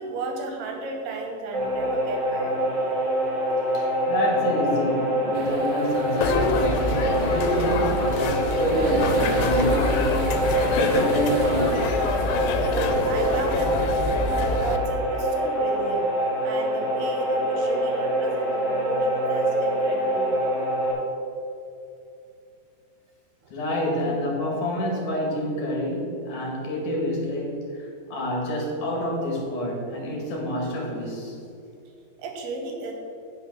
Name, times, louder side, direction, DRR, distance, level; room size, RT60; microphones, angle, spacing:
voice 1, 0.0-2.7 12.6-14.2 14.5-16.1 16.4-20.3 23.4-23.5 32.2-32.9, right 3 dB, 75° right, 1 dB, 2.9 m, -33 dB
sound 1, 1.5-20.9, right 1 dB, 30° right, 2.5 m, -25 dB
voice 2, 3.7-12.0 23.5-31.4, equal, 55° left, -2 dB, 3.0 m, -28 dB
sound 2, 5.3-12.7, right 5 dB, 90° right, 2.0 m, -38 dB
sound 3, 6.2-14.8, left 3 dB, 85° left, 2.9 m, -26 dB
8.2 x 6.4 x 6.2 m, 2.6 s
omnidirectional pair, 5.0 m